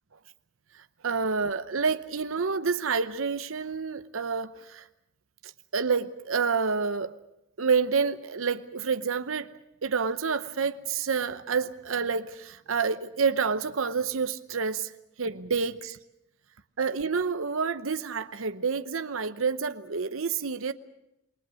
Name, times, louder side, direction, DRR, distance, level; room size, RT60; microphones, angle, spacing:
voice 1, 1.0-4.9 5.4-7.1 7.6-9.5 9.8-14.9 15.2-16.0 16.8-20.7, right 5 dB, 75° right, 0.8 m, -28 dB
27.5 x 21.0 x 6.3 m
head